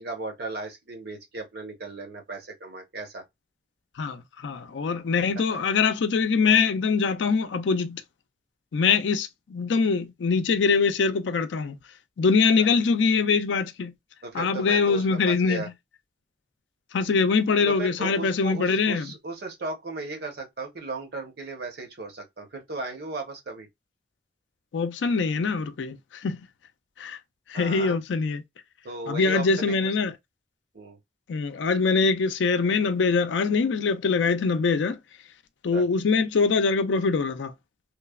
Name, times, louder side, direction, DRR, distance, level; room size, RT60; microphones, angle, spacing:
voice 1, 0.0-3.2 5.5-5.6 12.6-12.7 14.2-15.7 17.6-23.7 27.5-28.0 28.8-29.9 30.7-31.0 35.7-35.8, right 3 dB, 60° right, 0.8 m, -36 dB
voice 2, 4.0-8.0 8.7-11.7 12.2-13.9 14.3-15.6 16.9-19.1 24.7-26.0 26.2-26.4 27.0-27.2 27.5-28.4 29.1-30.1 31.3-35.0 35.6-37.5, left 4 dB, 85° left, 0.4 m, -23 dB
3.1 x 2.0 x 2.3 m
head